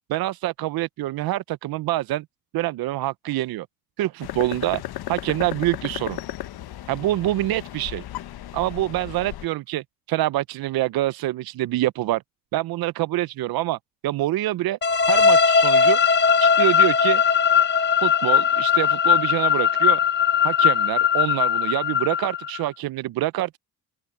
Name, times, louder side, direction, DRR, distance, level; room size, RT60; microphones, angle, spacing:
voice 1, 0.1-2.2 2.5-3.7 4.0-4.8 5.1-6.2 6.9-8.0 8.5-12.2 12.5-14.8 15.1-16.0 16.4-17.2 18.0-20.0 20.4-23.6, right 15 dB, 75° right, 0.5 m, -26 dB
sound 1, 4.2-9.5, left 13 dB, 90° left, 1.1 m, -35 dB
sound 2, 14.8-22.6, left 7 dB, 30° left, 0.9 m, -19 dB
open air
cardioid pair, 125°, 37 cm